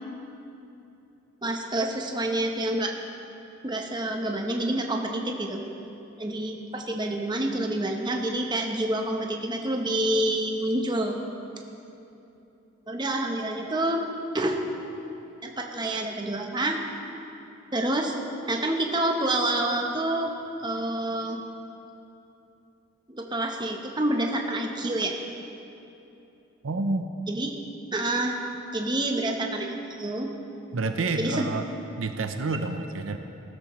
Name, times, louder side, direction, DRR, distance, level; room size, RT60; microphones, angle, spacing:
voice 1, 1.4-2.9 3.6-5.7 6.2-11.2 12.9-14.1 14.3-14.6 15.4-16.8 17.7-18.2 18.5-20.3 20.6-21.4 23.1-25.1 27.3-27.6 27.9-28.4 28.7-30.3 31.2-31.5, right 1 dB, 20° right, 2 dB, 0.8 m, -28 dB
voice 2, 26.6-27.1 30.7-31.6 32.0-33.2, right 3 dB, 80° right, 7 dB, 0.6 m, -28 dB
15.0 x 13.0 x 3.1 m, 2.9 s
head